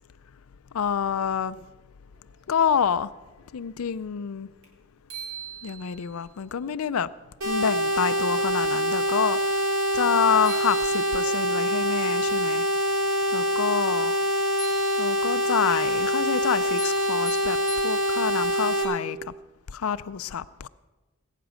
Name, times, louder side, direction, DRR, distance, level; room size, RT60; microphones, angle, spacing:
voice 1, 0.7-1.5 2.5-3.1 3.5-4.5 5.6-7.1 7.4-9.4 9.9-12.7 13.3-14.1 15.0-17.6 17.8-19.2 19.7-20.7, left 7 dB, 75° left, 0.4 m, -27 dB
sound 1, 4.6-4.7 5.1-6.2 10.1-10.2 10.5-11.5 14.6-15.5 16.8-18.5, right 3 dB, 55° right, 3.6 m, -40 dB
sound 2, 7.4-18.8, equal, 85° right, 5.3 m, -25 dB
20.0 x 9.1 x 6.2 m
head